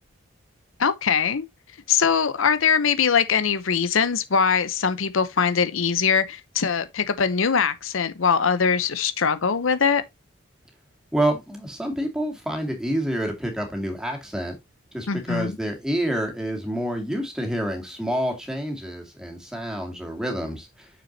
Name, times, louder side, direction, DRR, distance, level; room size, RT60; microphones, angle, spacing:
voice 1, 0.8-1.5 1.9-10.0 15.1-15.6, left 6 dB, 85° left, 0.7 m, -22 dB
voice 2, 11.1-14.5 14.9-20.9, right 1 dB, 5° right, 2.2 m, -28 dB
7.0 x 6.2 x 2.7 m
head